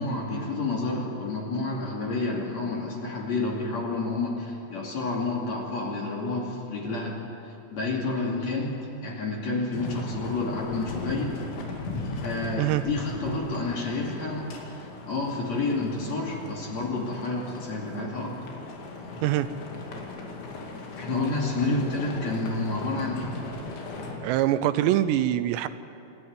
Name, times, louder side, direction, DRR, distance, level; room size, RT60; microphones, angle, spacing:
voice 1, 0.0-7.2 7.4-11.4 12.2-14.5 14.8-18.4 21.0-23.3, left 3 dB, 45° left, -2 dB, 3.4 m, -29 dB
sound 1, 9.7-24.2, left 3 dB, 90° left, 4.8 m, -38 dB
voice 2, 24.2-25.7, right 13 dB, 80° right, 12 dB, 2.8 m, -24 dB
27.5 x 13.5 x 9.5 m, 2.9 s
omnidirectional pair, 5.1 m